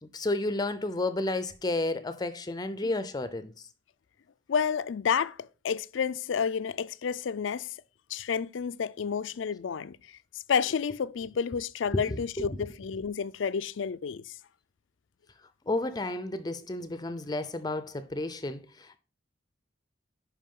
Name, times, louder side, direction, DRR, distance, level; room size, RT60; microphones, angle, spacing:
voice 1, 0.0-3.5 11.9-12.5 15.7-19.0, left 2 dB, 20° left, 0.5 m, -32 dB
voice 2, 4.5-7.8 8.1-10.0 10.5-14.3, left 6 dB, 70° left, 0.4 m, -30 dB
10.5 x 4.9 x 3.7 m
head